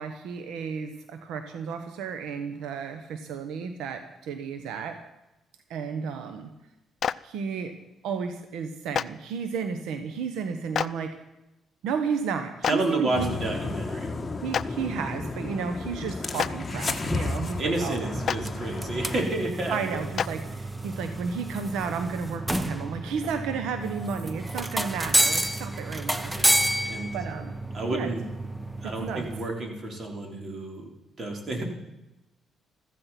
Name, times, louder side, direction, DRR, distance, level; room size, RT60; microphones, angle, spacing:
voice 1, 0.0-5.0 5.7-6.5 7.2-7.7 8.0-11.2 11.8-13.3 14.4-18.1 19.7-26.7 27.1-27.5 27.8-28.1 28.8-29.3, right 6 dB, 90° right, 8 dB, 1.2 m, -33 dB
Clapping, 7.0-7.1 8.9-9.0 10.7-10.9 12.6-12.7 14.5-14.6 16.3-16.5 18.2-18.4 20.2-20.3, left 8 dB, 55° left, 0.5 m, -25 dB
voice 2, 12.6-14.1 17.6-20.0 26.2-27.2 27.7-28.2 28.8-30.9 31.2-31.6, right 2 dB, 45° right, 2 dB, 4.4 m, -30 dB
sound 1, 13.1-19.2, left 3 dB, 25° left, 1.5 m, -33 dB
sound 2, 17.4-29.4, right 1 dB, 10° right, 0.9 m, -30 dB
15.0 x 14.5 x 6.0 m, 0.95 s
cardioid pair, 90°, 0 cm